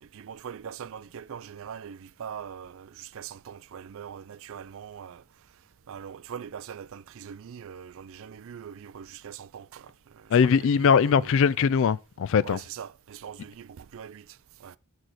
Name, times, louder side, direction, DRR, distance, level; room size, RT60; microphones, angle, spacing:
voice 1, 0.0-5.2 5.9-11.3 12.4-14.8, right 8 dB, 60° right, 0.4 m, -42 dB
voice 2, 10.3-12.6, left 6 dB, 60° left, 0.3 m, -21 dB
6.2 x 4.0 x 6.4 m
head